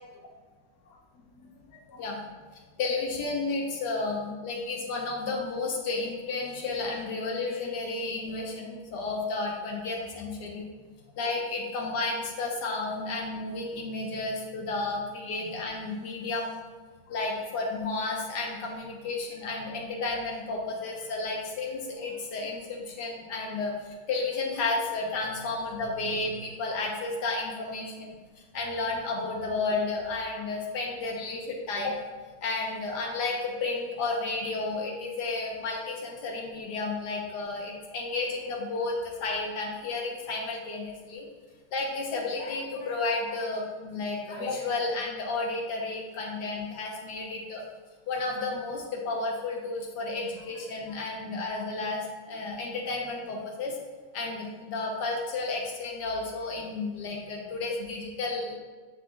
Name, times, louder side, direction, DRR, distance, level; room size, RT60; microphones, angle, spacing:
voice 1, 1.9-2.3 2.8-10.7 11.2-16.6 17.1-28.1 28.4-32.0 32.4-41.2 41.7-47.6 48.1-52.0 52.3-53.8 54.1-58.6, left 3 dB, 70° left, -1 dB, 1.6 m, -32 dB
6.6 x 6.2 x 2.4 m, 1.4 s
omnidirectional pair, 1.9 m